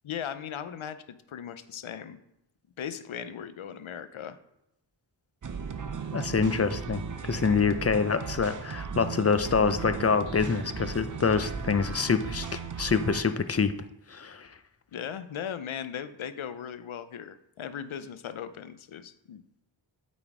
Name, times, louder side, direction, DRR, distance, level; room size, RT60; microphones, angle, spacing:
voice 1, 0.0-2.2 2.8-4.4 14.9-19.4, left 8 dB, 85° left, 12 dB, 0.6 m, -38 dB
sound 1, 5.4-13.2, right 6 dB, 40° right, 0.6 m, -36 dB
voice 2, 6.1-13.7 14.1-14.5, left 5 dB, 30° left, 11 dB, 0.5 m, -26 dB
8.7 x 4.2 x 4.7 m, 0.83 s
wide cardioid pair, 60°, 47 cm